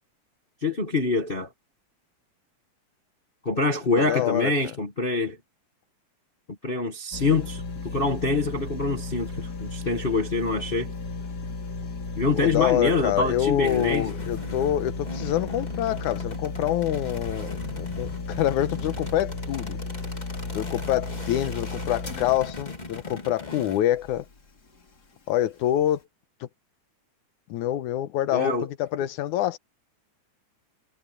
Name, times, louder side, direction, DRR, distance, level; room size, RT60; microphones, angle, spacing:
voice 1, 0.6-1.5 3.4-5.4 6.6-10.9 12.2-14.1 28.3-28.7, left 3 dB, 60° left, 0.5 m, -25 dB
voice 2, 4.1-4.5 12.4-19.8 20.5-24.3 25.3-26.0 27.5-29.6, left 12 dB, 85° left, 2.4 m, -26 dB
sound 1, 7.1-24.3 24.8-24.9, left 3 dB, 35° left, 3.3 m, -34 dB
sound 2, 13.6-23.8, left 3 dB, 15° left, 2.4 m, -40 dB
omnidirectional pair, 3.4 m